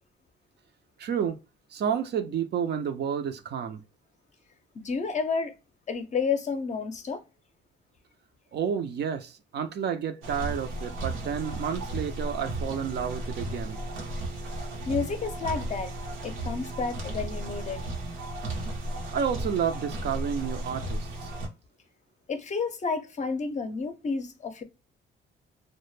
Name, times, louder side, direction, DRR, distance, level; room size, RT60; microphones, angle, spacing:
voice 1, 1.0-1.4 1.7-3.8 8.5-13.8 19.1-21.3, right 7 dB, 60° right, 0.5 m, -30 dB
voice 2, 4.7-5.5 5.9-7.2 14.9-15.9 16.2-17.8 22.3-24.6, left 5 dB, 35° left, 0.5 m, -30 dB
sound 1, 10.2-21.5, right 1 dB, 90° right, 0.8 m, -35 dB
2.1 x 2.0 x 3.0 m
cardioid pair, 90°, 20 cm